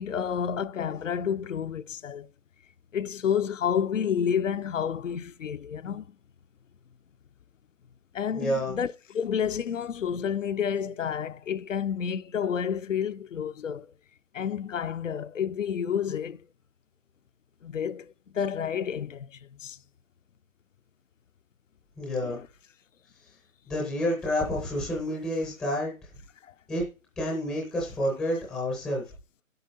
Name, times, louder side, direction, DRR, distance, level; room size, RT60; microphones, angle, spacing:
voice 1, 0.0-2.3 2.9-6.1 8.1-13.9 14.3-16.4 17.6-19.8 22.2-22.5, left 8 dB, 70° left, 0.7 m, -30 dB
voice 2, 8.3-8.8 22.0-22.4 23.7-25.9 26.7-26.8 27.2-29.0, equal, ahead, 0.5 m, -29 dB
9.4 x 7.9 x 4.1 m
hypercardioid pair, 150°, 40 cm